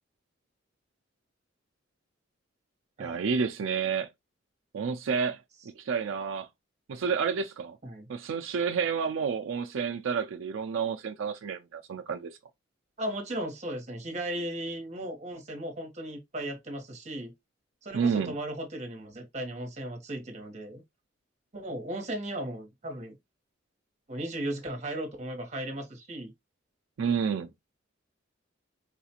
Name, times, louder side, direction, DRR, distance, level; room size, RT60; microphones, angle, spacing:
voice 1, 3.0-4.1 4.7-5.4 5.8-6.5 6.9-7.8 8.1-12.3 17.9-18.3 27.0-27.5, right 6 dB, 85° right, 0.4 m, -30 dB
voice 2, 13.0-17.3 17.8-20.8 21.5-23.1 24.1-26.3, right 1 dB, 35° right, 1.1 m, -36 dB
3.8 x 2.4 x 2.8 m
head